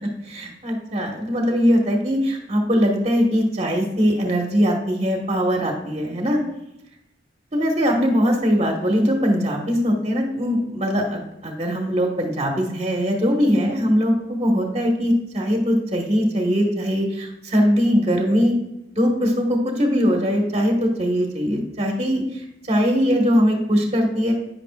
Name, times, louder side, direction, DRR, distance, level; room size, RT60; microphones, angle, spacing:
voice 1, 0.0-6.4 7.5-18.5 18.9-24.3, equal, 35° right, 0 dB, 1.6 m, -21 dB
10.0 x 10.0 x 2.5 m, 0.85 s
head